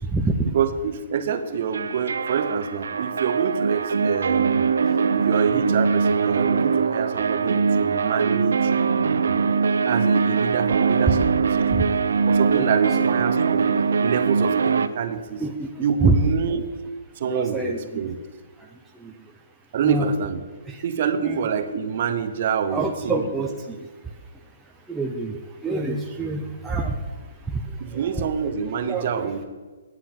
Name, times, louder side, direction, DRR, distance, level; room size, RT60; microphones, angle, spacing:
voice 1, 0.4-4.6 5.1-8.7 9.0-9.4 9.8-11.9 12.2-13.7 14.0-15.4 15.8-16.7 17.2-18.2 19.7-20.4 20.8-23.3 27.8-29.4, right 7 dB, 35° right, 8 dB, 0.8 m, -26 dB
sound 1, 1.7-14.9, right 5 dB, 85° right, 0.6 m, -22 dB
voice 2, 17.3-17.8 19.8-20.1 21.2-21.4 22.7-23.5 24.9-25.4 25.6-26.9 28.9-29.1, right 3 dB, 5° right, -1 dB, 0.5 m, -25 dB
9.8 x 8.9 x 5.9 m, 1.4 s
hypercardioid pair, 180°, 0 cm